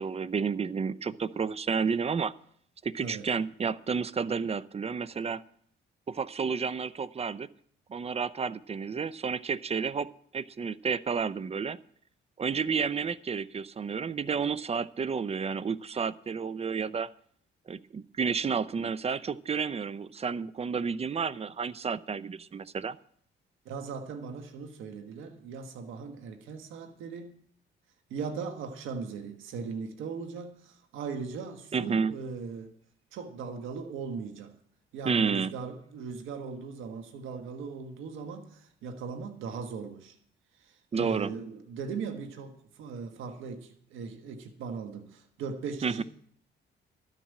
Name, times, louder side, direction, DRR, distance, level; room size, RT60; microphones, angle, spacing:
voice 1, 0.0-2.3 2.8-5.4 6.1-7.5 7.9-10.1 10.3-11.8 12.4-17.1 17.7-23.0 31.7-32.1 35.1-35.5 40.9-41.3 45.8-46.0, right 5 dB, 30° right, 0.6 m, -31 dB
voice 2, 3.0-3.3 23.6-27.3 28.1-32.7 33.1-34.6 34.9-40.2 40.6-46.0, right 5 dB, 90° right, 1.5 m, -39 dB
12.5 x 7.4 x 8.2 m
cardioid pair, 90°, 20 cm